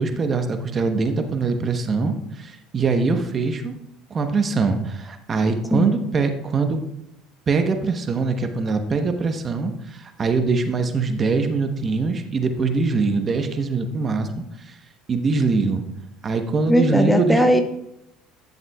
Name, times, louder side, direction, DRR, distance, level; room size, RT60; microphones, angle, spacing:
voice 1, 0.0-3.8 4.1-6.8 7.5-14.3 14.6-14.7 15.1-15.8 16.2-17.4, right 4 dB, 35° right, 6 dB, 1.0 m, -23 dB
voice 2, 16.7-17.6, equal, 5° left, 7 dB, 0.6 m, -18 dB
11.0 x 7.2 x 2.3 m, 0.82 s
hypercardioid pair, 80°, 0 cm